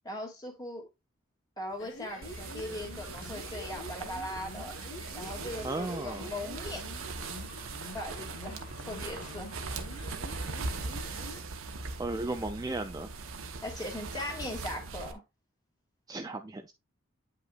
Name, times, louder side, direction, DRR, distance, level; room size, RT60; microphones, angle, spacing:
voice 1, 0.0-0.8 1.6-4.8 5.1-6.9 7.9-9.5 13.6-15.2, left 1 dB, 20° left, 2.2 m, -39 dB
sound 1, 1.7-11.5, left 2 dB, 55° left, 1.2 m, -47 dB
sound 2, 2.2-15.1, right 3 dB, 75° right, 0.9 m, -40 dB
sound 3, 3.2-3.5 5.2-5.5 7.2-7.5 9.2-9.5, left 3 dB, 35° left, 2.5 m, -52 dB
voice 2, 5.6-6.3 12.0-13.1 16.1-16.7, right 2 dB, 15° right, 0.3 m, -35 dB
9.0 x 5.5 x 2.4 m
head